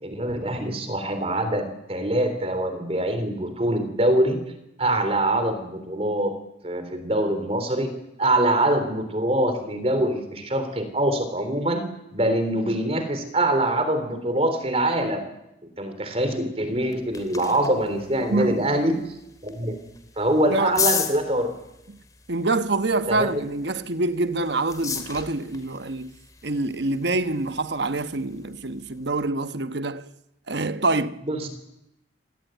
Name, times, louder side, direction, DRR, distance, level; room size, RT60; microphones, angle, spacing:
voice 1, 0.0-4.4 4.8-6.3 6.6-7.9 8.2-11.8 12.1-15.2 15.8-19.0 19.4-19.8 20.2-21.5 23.1-23.4 31.3-31.5, right 1 dB, 30° right, 3.6 m, -24 dB
sound 1, 16.7-29.2, left 6 dB, 20° left, 2.6 m, -36 dB
voice 2, 18.3-18.9 20.5-20.8 21.9-22.0 22.3-26.1 26.4-30.1 30.5-31.2, right 2 dB, 70° right, 1.1 m, -26 dB
27.5 x 18.5 x 9.2 m
head